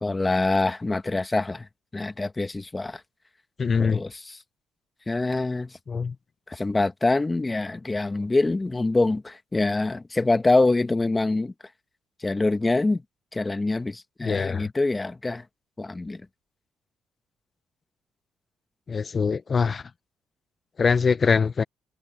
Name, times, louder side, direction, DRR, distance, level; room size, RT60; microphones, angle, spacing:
voice 1, 0.0-3.0 3.8-4.4 5.1-5.8 6.5-11.5 12.2-13.0 13.3-15.4 15.8-16.2, left 2 dB, 20° left, 1.5 m, -25 dB
voice 2, 3.6-4.0 5.9-6.1 14.3-14.6 18.9-19.8 20.8-21.6, left 5 dB, 40° left, 0.7 m, -23 dB
cardioid pair, 90°, 0 cm